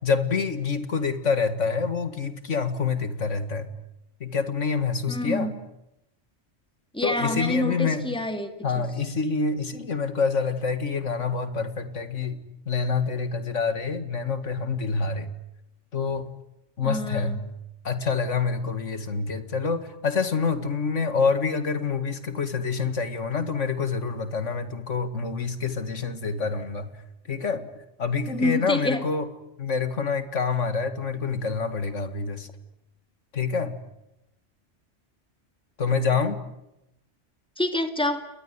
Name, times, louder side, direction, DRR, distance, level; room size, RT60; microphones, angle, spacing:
voice 1, 0.0-3.7 4.2-5.6 7.0-8.2 8.6-15.3 15.9-16.3 16.8-17.6 17.8-26.9 27.3-27.7 28.0-29.3 29.6-32.5 33.3-33.8 35.8-36.4, left 5 dB, 85° left, 2.3 m, -27 dB
voice 2, 5.1-5.5 6.9-8.9 16.8-17.4 28.3-29.0 37.6-38.2, left 1 dB, 5° left, 2.2 m, -27 dB
29.5 x 20.5 x 9.6 m
omnidirectional pair, 1.2 m